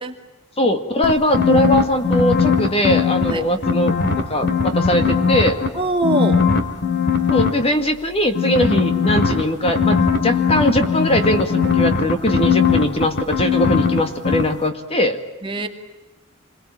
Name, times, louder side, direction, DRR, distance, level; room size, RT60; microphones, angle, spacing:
voice 1, 0.6-5.6 7.3-15.2, equal, 25° left, 6 dB, 2.0 m, -20 dB
sound 1, 1.0-3.3 3.6-5.7 6.0-7.5 8.3-14.0 14.2-14.4, left 6 dB, 50° left, 2.9 m, -18 dB
voice 2, 5.7-6.4 15.4-15.7, right 2 dB, 25° right, 4 dB, 2.4 m, -22 dB
28.0 x 22.5 x 8.9 m, 1.1 s
head